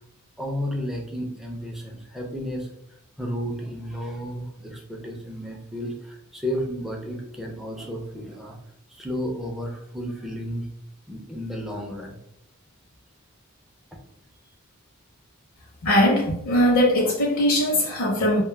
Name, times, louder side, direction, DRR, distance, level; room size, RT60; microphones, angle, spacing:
voice 1, 0.4-2.7 3.2-8.6 8.9-10.7 11.1-12.2, equal, ahead, -1 dB, 0.3 m, -32 dB
voice 2, 15.8-18.4, equal, 65° left, -2 dB, 0.6 m, -20 dB
2.2 x 2.0 x 3.1 m, 0.75 s
head